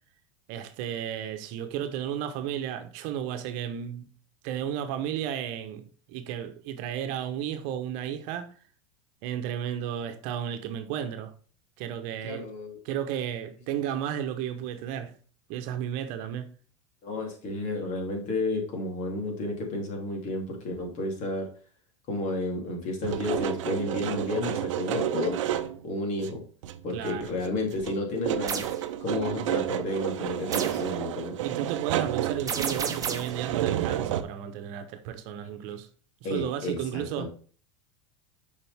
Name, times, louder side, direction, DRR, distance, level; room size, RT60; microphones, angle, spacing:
voice 1, 0.5-4.1 4.4-8.5 9.2-11.3 11.8-12.5 12.8-15.1 15.5-16.5 26.9-27.3 31.4-35.9 36.2-37.3, right 10 dB, 60° right, 1.0 m, -33 dB
voice 2, 12.2-12.8 17.0-21.5 22.1-25.4 25.8-26.4 26.8-28.7 29.0-31.4 36.2-37.3, left 2 dB, 50° left, 3.0 m, -31 dB
sound 1, 23.0-25.8 26.2-26.3 26.6-27.5 27.7-34.2, right 12 dB, 75° right, 0.7 m, -31 dB
sound 2, 28.5-28.8 30.5-30.9 32.5-33.4, right 6 dB, 20° right, 1.0 m, -31 dB
7.0 x 5.2 x 3.5 m
hypercardioid pair, 105°, 16 cm